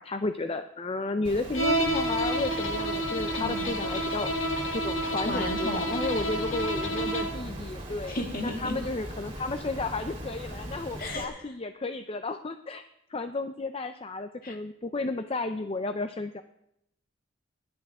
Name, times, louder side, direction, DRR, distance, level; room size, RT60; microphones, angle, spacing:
voice 1, 0.0-4.3 4.7-12.8 13.1-16.4, left 3 dB, 30° left, 9 dB, 0.5 m, -33 dB
Water, 1.2-11.2, right 1 dB, 30° right, 3.3 m, -40 dB
Bowed string instrument, 1.5-7.5, right 1 dB, 90° left, 1.8 m, -30 dB
voice 2, 3.4-3.8 5.3-6.1 8.1-8.8 11.0-11.5 14.4-14.6, left 1 dB, 45° left, 4 dB, 1.8 m, -34 dB
20.0 x 11.5 x 3.7 m, 0.81 s
head